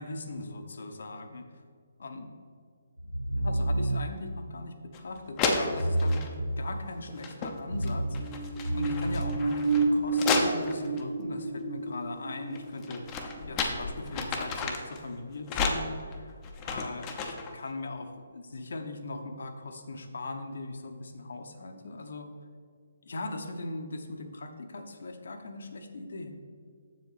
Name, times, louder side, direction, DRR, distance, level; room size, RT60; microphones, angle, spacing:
voice 1, 0.0-1.5 2.0-2.3 3.4-6.2 6.6-8.3 8.7-9.7 9.9-13.1 13.4-16.4 16.6-22.3 23.0-26.3, left 2 dB, 60° left, 7 dB, 0.9 m, -39 dB
sound 1, 3.0-4.3 5.6-7.1 7.6-10.1, right 1 dB, 90° right, 0.6 m, -31 dB
sound 2, 4.9-5.0 5.4-6.3 7.1-7.6 7.8-11.0 12.6-15.0 15.5-17.5, left 4 dB, 20° left, 0.7 m, -32 dB
sound 3, 8.1-14.4 14.7-14.8, right 3 dB, 15° right, 1.3 m, -31 dB
7.5 x 7.3 x 4.1 m, 2.1 s
figure-of-eight pair, 140°, 0 cm